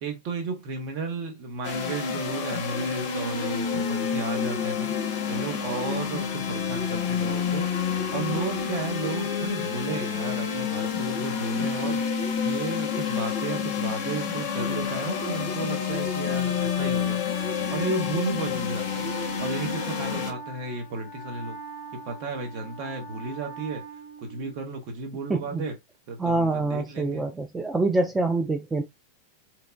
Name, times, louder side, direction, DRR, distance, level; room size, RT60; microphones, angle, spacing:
voice 1, 0.0-7.7 8.1-17.2 17.7-19.1 19.4-21.6 21.9-23.8 24.2-25.8 26.1-27.2, right 3 dB, 45° right, 0.8 m, -33 dB
sound 1, 1.6-20.3, left 7 dB, 45° left, 0.5 m, -28 dB
Wind instrument woodwind instrument, 17.3-24.8, right 4 dB, 80° right, 1.7 m, -42 dB
voice 2, 25.3-25.6 26.2-28.8, right 2 dB, 10° right, 0.3 m, -25 dB
2.9 x 2.1 x 2.2 m
figure-of-eight pair, 90°, 0 cm